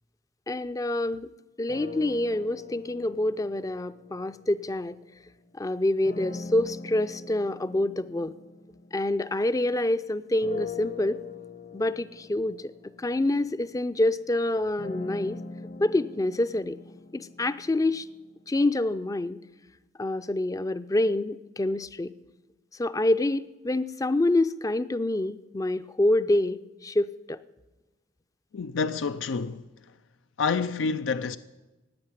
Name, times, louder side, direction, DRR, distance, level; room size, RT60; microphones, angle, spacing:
voice 1, 0.5-1.3 1.6-5.0 5.6-8.3 8.9-11.2 11.7-12.6 13.0-15.4 15.8-16.8 17.1-18.0 18.5-19.4 20.0-22.1 22.8-27.4, left 1 dB, 20° left, 0.4 m, -26 dB
sound 1, 1.7-5.2 6.0-9.8 10.4-18.4, left 4 dB, 50° left, 1.0 m, -42 dB
voice 2, 28.5-29.7 30.4-31.4, left 5 dB, 80° left, 0.5 m, -28 dB
16.5 x 8.4 x 9.7 m
head